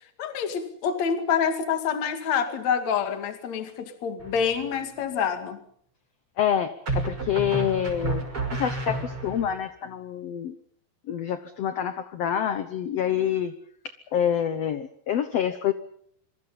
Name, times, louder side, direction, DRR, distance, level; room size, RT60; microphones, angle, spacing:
voice 1, 0.2-5.6, left 7 dB, 50° left, 8 dB, 3.2 m, -27 dB
sound 1, 4.2-4.8 6.9-9.5, right 2 dB, 35° right, 6.4 m, -31 dB
voice 2, 6.4-8.2 8.5-10.5 11.1-13.5 14.1-15.7, left 9 dB, 65° left, 11 dB, 1.6 m, -27 dB
26.0 x 24.5 x 5.6 m, 0.63 s
omnidirectional pair, 4.2 m